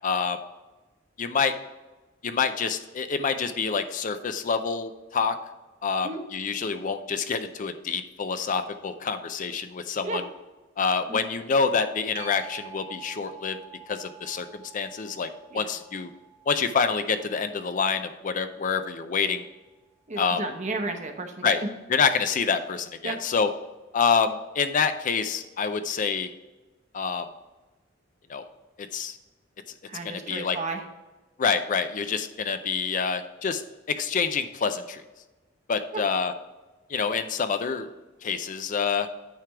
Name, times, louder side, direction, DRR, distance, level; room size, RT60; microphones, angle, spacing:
voice 1, 0.0-0.4 1.2-1.5 2.2-5.4 5.8-10.2 10.8-13.6 13.9-15.3 15.5-16.1 16.5-19.4 20.2-20.4 21.4-21.6 21.9-23.5 23.9-26.3 26.9-27.3 28.3-28.4 28.9-29.1 30.0-30.6 31.4-33.6 33.9-35.0 35.7-36.3 36.9-37.9 38.2-39.1, left 5 dB, 40° left, 9 dB, 0.4 m, -27 dB
sound 1, 12.1-19.3 24.8-24.9, right 6 dB, 75° right, 1.9 m, -48 dB
voice 2, 20.1-21.7 23.0-23.2 29.9-30.8 35.9-36.0, right 3 dB, 40° right, 5 dB, 0.9 m, -33 dB
9.1 x 3.4 x 5.8 m, 1.1 s
head